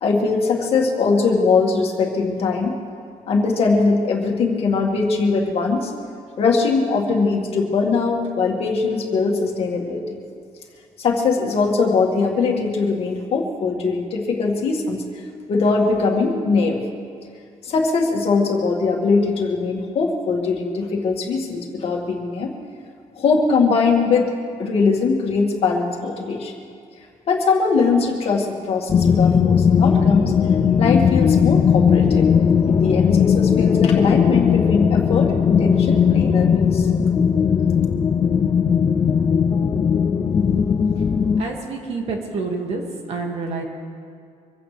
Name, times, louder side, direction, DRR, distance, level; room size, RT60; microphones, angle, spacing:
voice 1, 0.0-2.8 3.3-5.9 6.4-10.2 11.0-15.0 15.5-16.8 17.6-22.5 23.2-24.3 24.6-26.5 27.3-30.3 30.8-32.3 32.7-36.9, left 4 dB, 50° left, 0 dB, 2.1 m, -21 dB
sound 1, 28.9-41.4, left 7 dB, 25° left, 0.4 m, -17 dB
voice 2, 41.3-42.8 43.1-43.6, right 4 dB, 50° right, 1 dB, 2.3 m, -28 dB
25.5 x 16.0 x 3.4 m, 2.3 s
cardioid pair, 170°, 13 cm